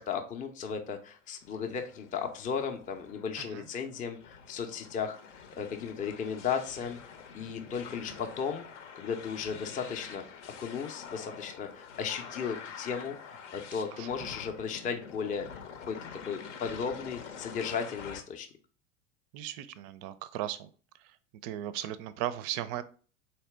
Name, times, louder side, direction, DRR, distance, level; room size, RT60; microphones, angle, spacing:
voice 1, 0.0-7.0 7.3-8.6 8.9-16.0 16.3-18.5, left 6 dB, 20° left, 5 dB, 0.5 m, -35 dB
sound 1, 1.4-18.2, left 6 dB, 70° left, 0.7 m, -47 dB
voice 2, 3.4-3.7 13.9-14.1 19.3-20.7 21.4-22.8, right 12 dB, 40° right, 15 dB, 0.4 m, -36 dB
4.0 x 2.8 x 3.3 m, 0.39 s
hypercardioid pair, 85°, 38 cm